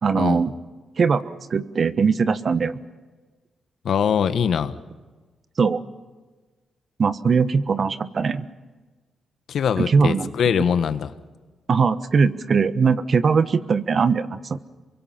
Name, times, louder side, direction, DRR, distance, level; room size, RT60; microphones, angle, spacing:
voice 1, 0.0-0.5 1.0-2.8 5.6-5.8 7.0-8.5 9.8-10.3 11.7-14.6, right 5 dB, 50° right, 12 dB, 1.3 m, -20 dB
voice 2, 3.8-4.8 9.5-11.1, left 7 dB, 70° left, 11 dB, 1.4 m, -22 dB
28.0 x 24.0 x 5.9 m, 1.3 s
cardioid pair, 75°, 0 cm